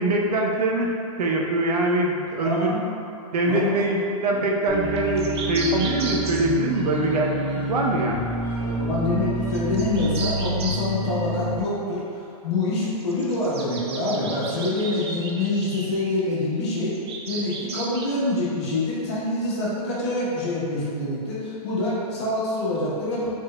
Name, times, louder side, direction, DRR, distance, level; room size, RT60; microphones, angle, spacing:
voice 1, 0.0-2.7 3.3-7.3 7.7-8.2, right 2 dB, 85° right, -1 dB, 0.8 m, -23 dB
voice 2, 2.4-2.8 3.4-3.7 8.5-12.0 12.4-16.9 17.3-23.3, left 2 dB, 45° left, -8 dB, 1.4 m, -26 dB
sound 1, 4.7-11.5, right 1 dB, 20° right, 1.0 m, -28 dB
sound 2, 4.8-7.8 9.5-10.8 12.8-16.3 16.9-18.1, right 4 dB, 45° right, 0.6 m, -35 dB
5.1 x 4.0 x 2.4 m, 2.5 s
hypercardioid pair, 170°, 20 cm